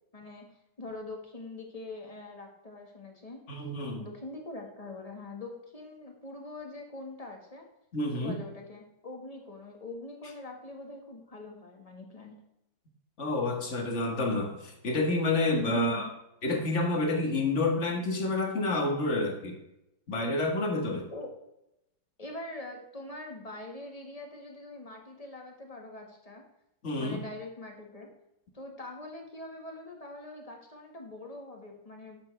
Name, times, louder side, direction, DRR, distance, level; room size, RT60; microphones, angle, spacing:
voice 1, 0.1-0.4 0.8-3.4 4.0-7.7 8.2-12.3 15.7-16.1 21.1-21.3 22.2-26.4 27.0-28.1 28.5-32.2, left 2 dB, 20° left, 1 dB, 1.7 m, -43 dB
voice 2, 3.5-4.1 7.9-8.4 13.2-16.1 16.4-19.6 20.1-21.1 26.8-27.2, left 2 dB, 45° left, 2 dB, 1.9 m, -29 dB
11.0 x 7.6 x 3.4 m, 0.86 s
omnidirectional pair, 1.8 m